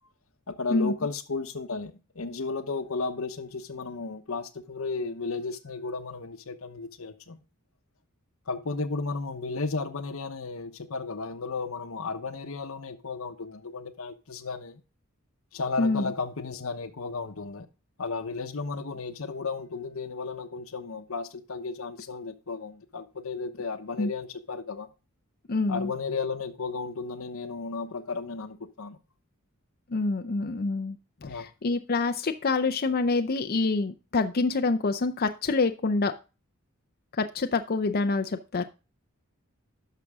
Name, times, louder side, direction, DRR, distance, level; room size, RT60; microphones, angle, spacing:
voice 1, 0.5-7.4 8.5-14.8 15.5-17.7 18.0-24.9 25.7-29.0 31.2-31.5, left 4 dB, 85° left, 0.9 m, -34 dB
voice 2, 15.8-16.1 24.0-24.1 25.5-25.9 29.9-36.1 37.1-38.6, left 3 dB, 45° left, 0.6 m, -26 dB
11.5 x 6.1 x 3.6 m
head